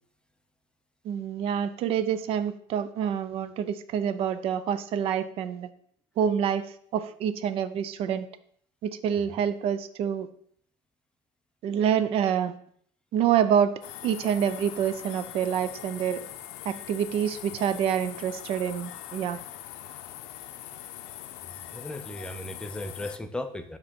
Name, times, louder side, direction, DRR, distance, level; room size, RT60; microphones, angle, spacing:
voice 1, 1.0-5.7 6.2-6.7 6.9-8.3 8.8-10.3 11.6-12.5 13.1-16.2 16.7-19.4, right 8 dB, 50° right, 13 dB, 0.4 m, -27 dB
sound 1, 13.8-23.2, left 12 dB, 75° left, 0.5 m, -42 dB
voice 2, 21.7-23.8, left 1 dB, 10° left, 8 dB, 0.4 m, -36 dB
7.4 x 3.0 x 4.3 m, 0.62 s
cardioid pair, 135°, 12 cm